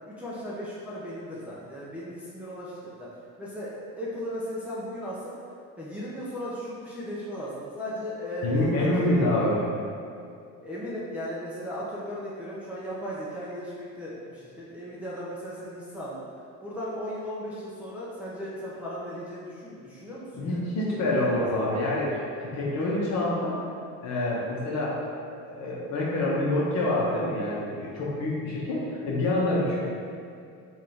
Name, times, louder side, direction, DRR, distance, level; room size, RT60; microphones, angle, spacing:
voice 1, 0.0-3.1 3.4-5.3 5.8-9.1 10.6-16.2 16.6-21.4, equal, 5° right, -8 dB, 0.5 m, -36 dB
voice 2, 8.4-9.6 20.3-23.6 24.0-25.0 25.5-29.8, left 1 dB, 50° left, -5 dB, 1.1 m, -26 dB
3.5 x 2.6 x 4.4 m, 2.4 s
cardioid pair, 130°, 34 cm